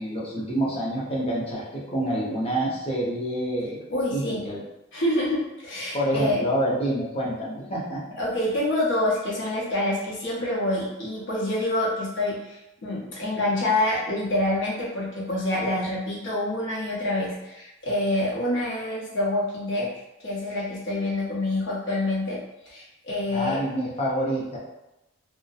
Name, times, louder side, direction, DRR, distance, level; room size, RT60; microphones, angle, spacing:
voice 1, 0.0-3.8 4.1-4.6 5.9-8.0 23.3-24.6, right 1 dB, 30° left, -5 dB, 0.6 m, -27 dB
voice 2, 3.9-4.4 4.9-6.5 8.2-19.9 20.2-22.4 22.7-23.6, left 1 dB, 60° left, -5 dB, 0.8 m, -27 dB
2.6 x 2.1 x 2.3 m, 0.94 s
head